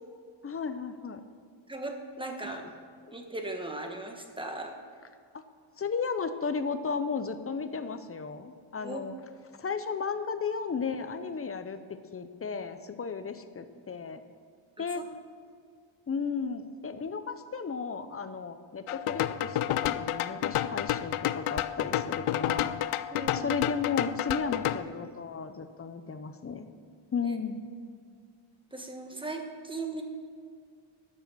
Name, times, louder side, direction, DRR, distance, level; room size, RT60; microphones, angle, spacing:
voice 1, 0.4-1.2 5.8-9.1 9.5-11.8 12.1-14.2 14.8-15.0 16.1-22.8 23.3-26.7 27.1-27.6, left 5 dB, 30° left, 10 dB, 0.7 m, -34 dB
voice 2, 1.7-2.7 3.1-4.8 8.8-9.1 14.8-15.0 23.1-23.6 27.2-27.3 28.7-30.0, right 2 dB, 10° right, 3 dB, 1.2 m, -38 dB
sound 1, 18.9-24.8, left 12 dB, 90° left, 0.6 m, -30 dB
12.0 x 7.6 x 6.3 m, 2.1 s
wide cardioid pair, 130°, 49 cm